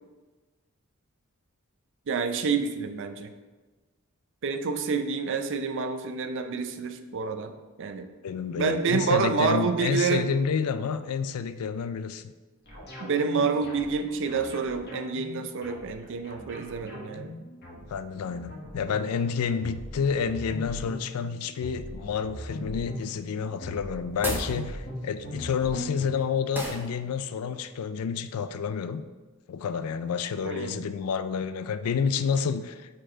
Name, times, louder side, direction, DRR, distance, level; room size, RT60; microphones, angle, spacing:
voice 1, 2.1-3.3 4.4-7.5 7.8-8.1 8.6-10.3 13.0-17.3 30.4-30.9, right 5 dB, 55° right, 8 dB, 0.5 m, -28 dB
voice 2, 8.2-12.3 17.9-29.0 29.5-33.0, left 6 dB, 80° left, 11 dB, 0.4 m, -29 dB
sound 1, 12.7-26.0, left 1 dB, 50° left, 1.6 m, -40 dB
sound 2, 24.1-24.6 26.5-26.9, right 1 dB, 10° right, 0.7 m, -31 dB
4.9 x 4.5 x 4.3 m, 1.3 s
head